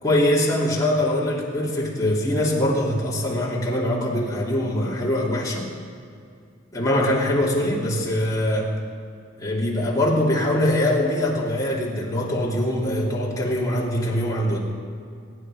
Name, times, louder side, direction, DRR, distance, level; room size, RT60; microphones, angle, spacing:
voice 1, 0.0-5.7 6.7-8.7 9.4-14.6, left 1 dB, 20° left, -4 dB, 3.0 m, -23 dB
23.5 x 9.7 x 5.0 m, 2.3 s
head